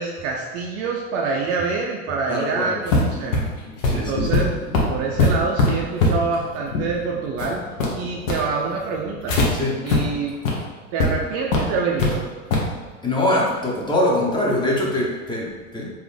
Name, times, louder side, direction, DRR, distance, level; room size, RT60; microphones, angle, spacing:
voice 1, 0.0-3.4 3.9-4.5 4.9-7.6 8.0-9.4 9.8-10.3 10.9-12.3, right 4 dB, 40° right, -1 dB, 0.5 m, -26 dB
voice 2, 2.3-2.7 3.8-4.2 9.5-9.8 13.0-15.9, left 1 dB, 10° left, -4 dB, 0.9 m, -23 dB
sound 1, 2.9-9.5 9.9-10.0 10.3-10.5 11.0-11.1 11.5-12.1 12.5-12.7, left 3 dB, 65° left, 1.0 m, -22 dB
3.9 x 2.6 x 3.4 m, 1.4 s
hypercardioid pair, 85°, 41 cm